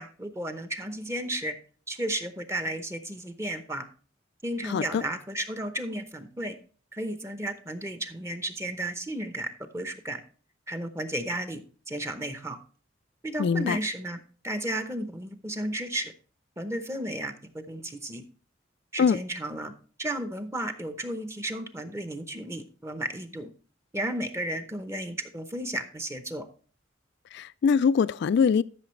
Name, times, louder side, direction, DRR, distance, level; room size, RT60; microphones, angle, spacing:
voice 1, 0.0-1.6 1.9-3.9 4.4-6.6 6.9-10.2 10.7-11.6 11.9-12.6 13.2-14.2 14.4-16.1 16.6-18.2 18.9-19.7 20.0-23.5 23.9-26.5, right 1 dB, 15° right, 0.8 m, -33 dB
voice 2, 4.6-5.0 13.4-13.8 19.0-19.2 27.3-28.6, left 6 dB, 60° left, 0.3 m, -23 dB
13.0 x 6.1 x 3.1 m
head